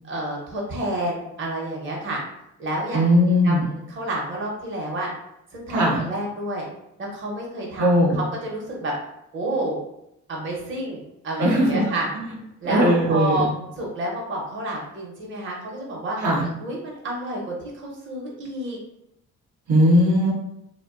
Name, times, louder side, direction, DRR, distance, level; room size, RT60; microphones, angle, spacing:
voice 1, 0.0-2.2 2.6-3.1 3.4-5.1 5.5-6.7 7.0-7.9 8.1-8.9 9.3-9.8 10.3-12.1 12.6-13.5 13.8-16.2 16.6-18.8, right 1 dB, 40° right, -2 dB, 0.7 m, -29 dB
voice 2, 2.9-3.7 5.7-6.0 7.8-8.2 11.4-11.8 12.6-13.5 16.2-16.5 19.7-20.3, equal, 75° right, -3 dB, 0.7 m, -19 dB
2.5 x 2.2 x 2.3 m, 0.80 s
cardioid pair, 90°, 30 cm